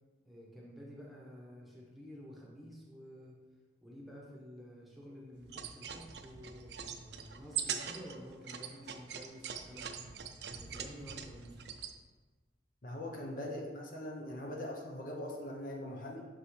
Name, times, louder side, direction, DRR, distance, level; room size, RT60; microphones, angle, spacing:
voice 1, 0.2-3.4 3.8-9.9 10.5-11.6, equal, ahead, -5 dB, 1.1 m, -51 dB
sound 1, 5.4-11.9, right 8 dB, 65° right, 0.5 m, -42 dB
voice 2, 12.8-16.3, left 1 dB, 50° left, -1 dB, 0.9 m, -41 dB
6.1 x 5.5 x 3.3 m, 1.3 s
head